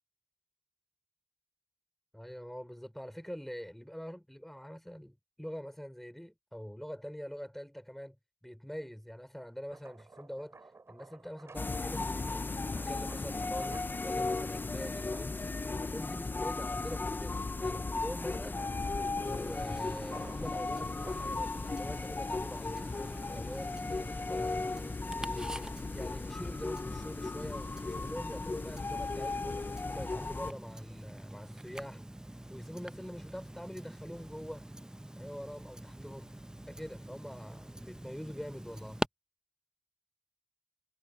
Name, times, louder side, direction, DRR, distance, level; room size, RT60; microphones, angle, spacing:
voice 1, 2.1-12.5 12.9-18.7 19.0-25.7 25.9-32.0 32.5-34.7 35.1-36.4 36.7-39.0, equal, 5° left, 4.5 m, -45 dB
sound 1, 9.5-16.1 16.7-23.8, right 3 dB, 70° right, 2.6 m, -56 dB
sound 2, 11.5-30.5, left 3 dB, 40° left, 0.4 m, -36 dB
Tick-tock, 19.3-39.1, right 1 dB, 15° right, 0.7 m, -46 dB
wide cardioid pair, 65°, 5 cm